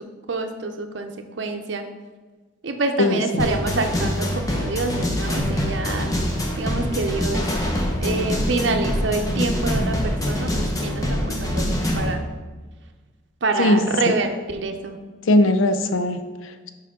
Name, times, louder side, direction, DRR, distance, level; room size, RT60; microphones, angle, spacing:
voice 1, 0.3-1.8 2.6-6.1 6.6-7.7 8.0-12.3 13.4-15.0, right 3 dB, 65° right, 5 dB, 0.6 m, -26 dB
voice 2, 3.0-3.5 13.6-13.8 15.3-16.7, left 1 dB, 85° left, 9 dB, 0.5 m, -20 dB
sound 1, 3.4-12.1, equal, 20° left, 0.8 m, -24 dB
6.9 x 4.9 x 3.7 m, 1.3 s
head